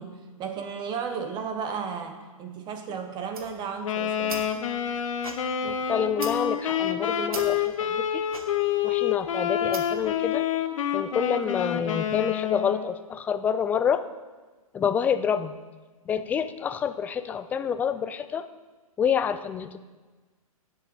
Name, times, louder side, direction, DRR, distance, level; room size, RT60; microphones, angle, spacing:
voice 1, 0.0-4.4, right 6 dB, 25° right, 7 dB, 1.1 m, -34 dB
sound 1, 3.2-10.1, right 4 dB, 70° right, 1.5 m, -42 dB
Wind instrument woodwind instrument, 3.8-12.9, left 9 dB, 60° left, 0.9 m, -28 dB
voice 2, 5.6-8.2 8.8-10.5 10.9-14.0 14.7-15.5 16.1-18.5 19.0-19.8, left 7 dB, 10° left, 11 dB, 0.3 m, -27 dB
16.5 x 6.9 x 4.2 m, 1.3 s
figure-of-eight pair, 125°, 19 cm